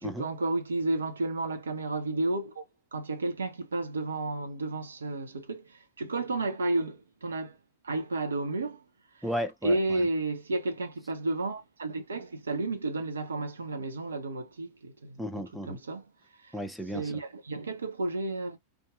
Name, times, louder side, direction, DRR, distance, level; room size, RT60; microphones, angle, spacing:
voice 1, 0.0-2.6 2.9-7.6 7.8-8.8 9.6-15.2 15.7-16.0 16.4-16.5 16.9-18.6, right 2 dB, 70° right, 0.6 m, -32 dB
voice 2, 9.2-10.1 15.2-15.8 16.5-17.1, equal, ahead, 0.4 m, -34 dB
2.6 x 2.4 x 2.2 m
figure-of-eight pair, 90°, 0 cm